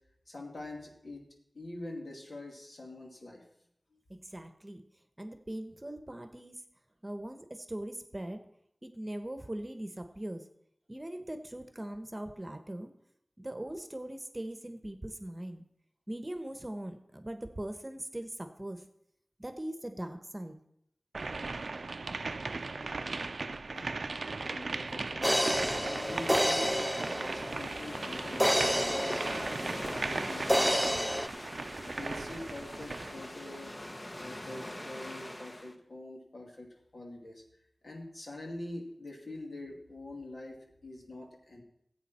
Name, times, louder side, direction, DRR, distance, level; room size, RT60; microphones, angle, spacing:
voice 1, 0.3-1.3 1.5-3.4 3.9-4.0 23.7-29.5 29.9-31.3 31.8-33.8 34.2-37.4 37.8-41.6, left 2 dB, 75° left, 0 dB, 2.6 m, -45 dB
voice 2, 4.1-4.8 5.2-6.6 7.0-8.4 8.8-10.4 10.9-12.9 13.4-15.6 16.1-18.8 19.4-20.6, right 1 dB, 25° right, 8 dB, 1.1 m, -40 dB
sound 1, 21.1-33.2, right 3 dB, 90° right, 0.5 m, -37 dB
sound 2, 25.2-27.8 28.4-30.1 30.5-31.3, equal, ahead, 0.3 m, -29 dB
sound 3, 25.8-35.7, left 1 dB, 35° left, 1.1 m, -42 dB
15.5 x 8.3 x 4.3 m, 0.75 s
wide cardioid pair, 65°, 0 cm